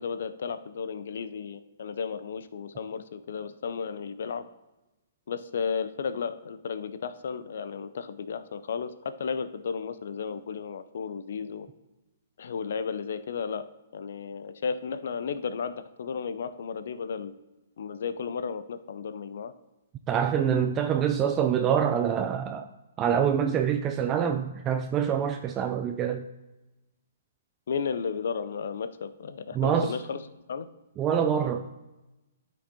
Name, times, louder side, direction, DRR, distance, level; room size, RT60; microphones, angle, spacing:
voice 1, 0.0-4.4 5.3-11.7 12.4-13.7 13.9-17.3 17.8-19.5 27.7-30.2 30.5-30.7, left 6 dB, 60° left, 12 dB, 0.5 m, -33 dB
voice 2, 20.1-22.7 23.0-26.2 29.5-29.9 31.0-31.6, right 8 dB, 25° right, 6 dB, 0.4 m, -25 dB
12.5 x 5.3 x 2.8 m, 1.0 s
figure-of-eight pair, 125°, 0 cm